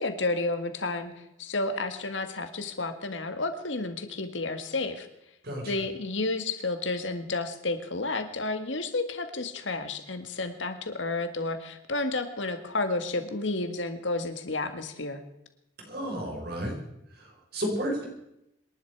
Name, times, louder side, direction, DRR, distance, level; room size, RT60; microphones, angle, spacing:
voice 1, 0.0-5.1 5.7-15.2, left 2 dB, 75° left, 8 dB, 1.8 m, -31 dB
voice 2, 15.9-16.8 17.2-18.1, equal, 55° right, 0 dB, 5.3 m, -32 dB
26.5 x 11.0 x 4.8 m, 0.84 s
head